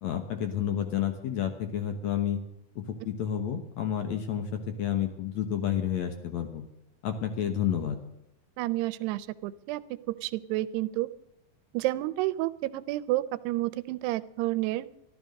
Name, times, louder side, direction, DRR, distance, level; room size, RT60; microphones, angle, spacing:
voice 1, 0.0-2.4 2.8-6.6 7.0-8.0, left 9 dB, 70° left, 7 dB, 1.7 m, -30 dB
voice 2, 8.6-9.8 10.1-11.1 11.7-14.9, right 17 dB, 85° right, 15 dB, 2.7 m, -30 dB
13.5 x 12.5 x 6.4 m, 0.83 s
omnidirectional pair, 4.7 m